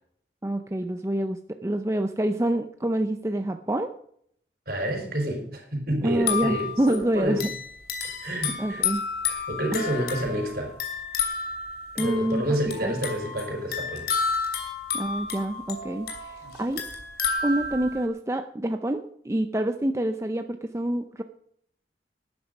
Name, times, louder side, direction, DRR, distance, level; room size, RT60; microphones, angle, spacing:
voice 1, 0.4-3.9 6.0-7.4 8.6-9.1 9.7-9.8 12.0-12.5 12.8-12.9 14.9-16.9 17.4-21.2, right 1 dB, 15° right, 7 dB, 0.5 m, -27 dB
voice 2, 4.7-7.4 8.2-8.8 9.3-10.8 11.9-14.2, right 1 dB, 55° right, 3 dB, 4.3 m, -29 dB
sound 1, 6.1-18.1, left 5 dB, 60° left, 2.9 m, -31 dB
12.0 x 9.7 x 5.2 m, 0.65 s
head